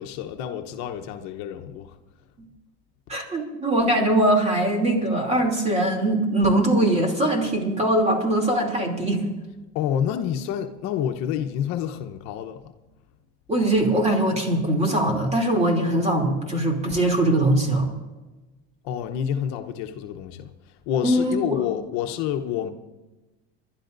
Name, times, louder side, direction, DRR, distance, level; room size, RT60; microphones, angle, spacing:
voice 1, 0.0-1.9 9.7-12.6 18.8-20.5 20.9-22.7, left 9 dB, 65° left, 1.0 m, -28 dB
voice 2, 3.1-9.2 13.5-17.9 21.0-21.6, right 1 dB, 20° right, 2.9 m, -21 dB
28.0 x 12.0 x 2.6 m
supercardioid pair, 115°, 30 cm